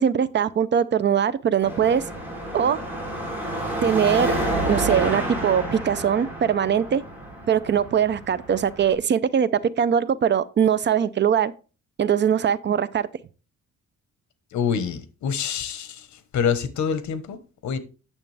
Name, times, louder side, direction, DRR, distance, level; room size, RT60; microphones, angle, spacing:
voice 1, 0.0-2.0 2.5-2.8 3.8-4.4 4.7-7.0 7.5-9.5 9.8-11.5 12.0-13.1, right 8 dB, 40° right, 0.5 m, -21 dB
Car passing by / Traffic noise roadway noise / Engine, 1.6-8.9, right 1 dB, 5° right, 3.4 m, -29 dB
voice 2, 14.5-17.8, left 7 dB, 75° left, 1.2 m, -27 dB
9.1 x 7.0 x 3.3 m
cardioid pair, 155°, 29 cm